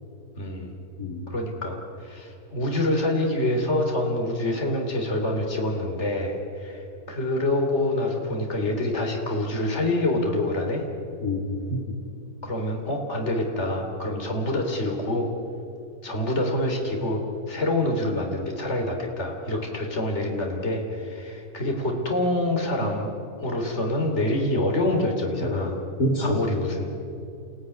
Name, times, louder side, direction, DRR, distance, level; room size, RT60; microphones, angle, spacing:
voice 1, 0.4-0.7 1.3-10.8 12.4-15.3 16.0-23.1 23.4-25.8 26.2-26.9, left 1 dB, 45° left, 2 dB, 3.7 m, -26 dB
voice 2, 1.0-1.3 11.2-12.0 25.4-26.6, left 1 dB, 75° left, 1 dB, 3.6 m, -27 dB
29.5 x 17.0 x 9.9 m, 2.7 s
omnidirectional pair, 1.7 m